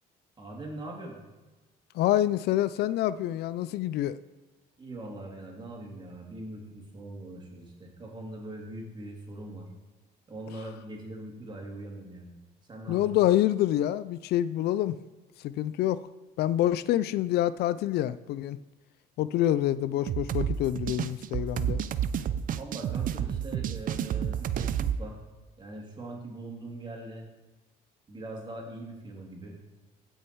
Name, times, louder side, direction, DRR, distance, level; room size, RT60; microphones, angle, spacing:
voice 1, 0.4-1.2 4.8-9.6 10.3-12.3 12.7-13.1 22.6-25.2 25.6-27.2 28.1-29.6, right 2 dB, 25° right, -1 dB, 3.1 m, -41 dB
voice 2, 1.9-4.2 12.9-15.0 15.4-16.0 16.4-18.6 19.2-21.8, left 13 dB, 75° left, 16 dB, 0.4 m, -26 dB
sound 1, 20.1-25.0, right 9 dB, 55° right, 0.6 m, -30 dB
16.0 x 6.5 x 4.6 m, 1.2 s
cardioid pair, 110°, 17 cm